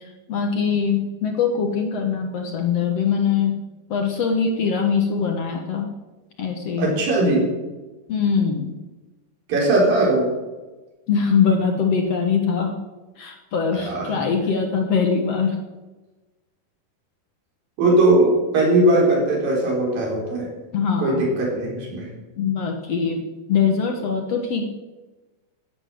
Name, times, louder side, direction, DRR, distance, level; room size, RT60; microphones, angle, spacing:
voice 1, 0.3-3.6 3.9-5.9 6.4-6.9 8.1-8.7 11.1-12.8 13.2-15.6 20.7-21.2 22.4-23.2 23.5-24.7, left 6 dB, 55° left, 3 dB, 1.9 m, -22 dB
voice 2, 6.8-7.5 9.5-10.3 13.7-14.1 17.8-20.5 21.0-22.1, right 2 dB, 70° right, -2 dB, 5.8 m, -19 dB
16.0 x 8.9 x 7.7 m, 1.2 s
omnidirectional pair, 4.3 m